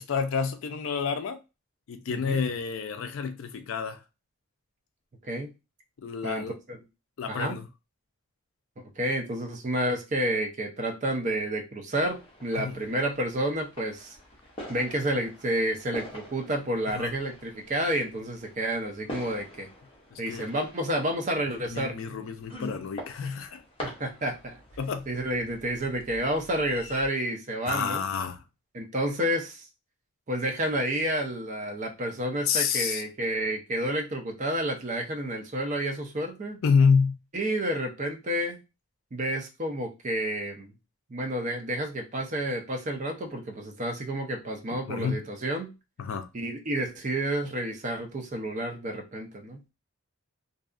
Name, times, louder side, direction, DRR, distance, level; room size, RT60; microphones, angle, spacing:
voice 1, 0.0-1.4 1.9-4.0 6.0-6.5 7.2-7.7 12.6-12.8 16.9-17.1 20.1-20.5 21.5-23.6 24.8-25.1 27.7-28.4 32.5-33.0 36.6-37.2 44.8-45.2 46.0-46.3, left 6 dB, 65° left, 0.4 m, -28 dB
voice 2, 6.2-6.8 7.3-7.6 9.0-14.2 14.7-19.7 20.2-22.0 23.8-24.5 25.1-28.0 28.7-29.7 30.3-36.6 37.3-38.6 39.1-40.7 41.1-45.7 46.3-49.6, right 1 dB, 35° right, 0.5 m, -30 dB
sound 1, 12.0-27.1, equal, 25° left, 0.7 m, -46 dB
2.7 x 2.3 x 2.4 m
head